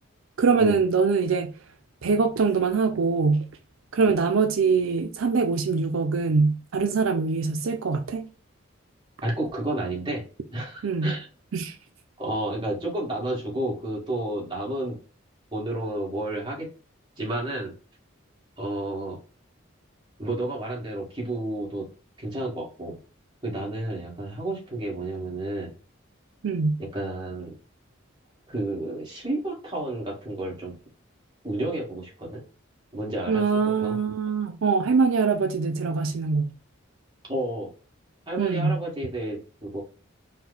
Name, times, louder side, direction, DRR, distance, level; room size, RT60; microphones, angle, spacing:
voice 1, 0.4-1.5 2.0-3.4 3.9-8.2 10.8-11.1 11.5-11.7 26.4-26.8 33.3-36.5 38.4-38.8, right 4 dB, 80° right, 0.5 m, -23 dB
voice 2, 9.2-10.2 10.5-11.3 12.2-15.0 15.5-16.7 17.2-17.7 18.6-19.2 20.2-21.9 22.2-23.0 23.4-25.7 26.8-27.6 28.5-30.8 31.4-32.4 32.9-34.0 37.3-37.7 38.3-39.8, right 1 dB, 20° right, 1.7 m, -31 dB
4.4 x 2.2 x 3.9 m
head